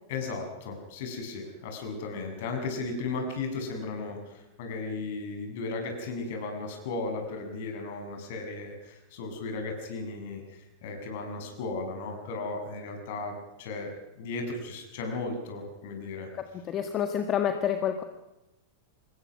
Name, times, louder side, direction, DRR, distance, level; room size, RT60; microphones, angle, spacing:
voice 1, 0.1-16.3, left 3 dB, 55° left, 4 dB, 6.8 m, -35 dB
voice 2, 16.4-18.0, left 9 dB, 30° left, 7 dB, 1.8 m, -28 dB
26.5 x 21.5 x 6.1 m, 0.96 s
figure-of-eight pair, 90°, 0 cm